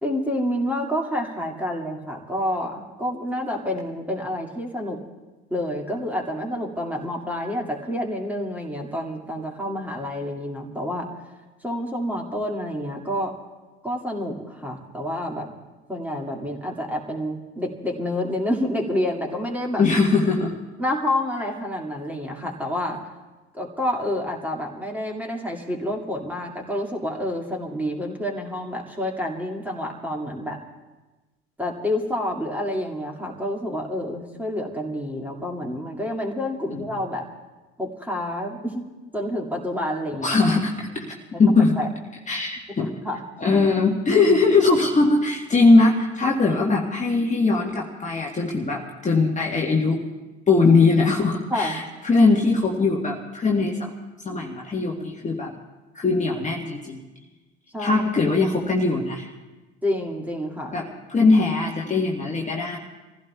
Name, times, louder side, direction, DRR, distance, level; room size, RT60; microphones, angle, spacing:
voice 1, 0.0-5.0 5.5-11.1 11.6-13.3 13.8-15.5 15.9-19.8 20.8-23.0 23.5-30.6 31.6-37.3 37.8-38.8 39.1-40.5 41.8-41.9 43.0-43.2 44.1-44.4 46.4-46.7 51.5-51.8 57.7-58.0 59.8-60.7, left 1 dB, 5° right, 0 dB, 2.2 m, -28 dB
voice 2, 19.8-20.5 36.7-36.8 40.2-41.8 42.3-43.0 43.4-50.0 50.5-53.9 54.2-55.5 55.9-57.0 57.8-59.3 60.7-62.8, left 3 dB, 20° left, -1 dB, 1.5 m, -20 dB
29.0 x 15.5 x 2.3 m, 1.2 s
figure-of-eight pair, 65°, 33 cm